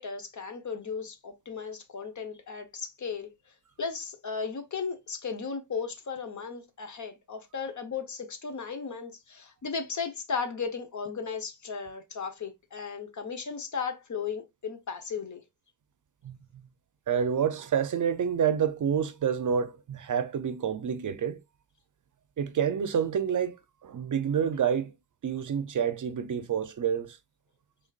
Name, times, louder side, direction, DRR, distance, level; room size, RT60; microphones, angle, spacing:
voice 1, 0.0-3.3 3.8-15.4, left 5 dB, 45° left, 1.0 m, -36 dB
voice 2, 17.1-21.4 22.4-23.6 23.8-24.9 25.2-27.2, right 8 dB, 50° right, 0.6 m, -28 dB
5.2 x 3.5 x 2.4 m
wide cardioid pair, 125°, 40 cm